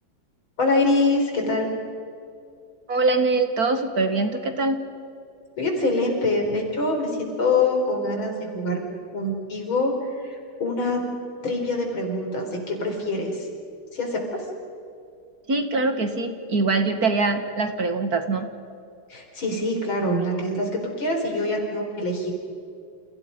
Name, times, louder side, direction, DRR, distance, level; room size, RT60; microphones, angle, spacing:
voice 1, 0.6-1.7 5.6-8.8 9.1-9.9 10.2-11.1 11.4-13.4 13.9-14.5 19.1-22.3, left 2 dB, 75° left, 2 dB, 5.3 m, -24 dB
voice 2, 2.9-4.8 15.5-18.5, right 3 dB, 50° right, 7 dB, 2.0 m, -23 dB
30.0 x 29.0 x 5.3 m, 2.4 s
omnidirectional pair, 2.3 m